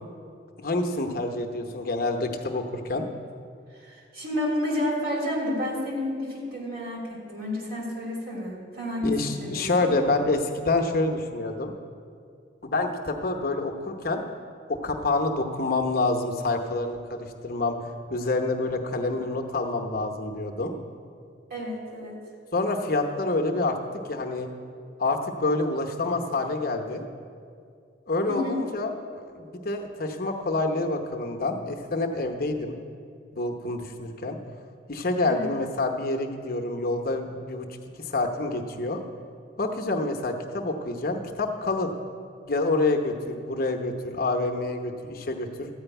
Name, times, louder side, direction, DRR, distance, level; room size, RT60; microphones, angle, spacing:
voice 1, 0.6-3.1 9.0-11.7 12.6-14.2 14.7-20.7 22.5-23.8 24.0-24.5 25.0-27.1 28.1-32.7 33.3-34.4 34.9-37.7 38.0-39.0 39.6-41.9 42.5-45.7, left 2 dB, 50° left, 4 dB, 0.9 m, -27 dB
voice 2, 3.7-9.9 21.5-22.2 28.3-28.6 35.2-35.5, left 1 dB, 50° right, -3 dB, 3.0 m, -30 dB
13.5 x 5.1 x 9.0 m, 2.3 s
head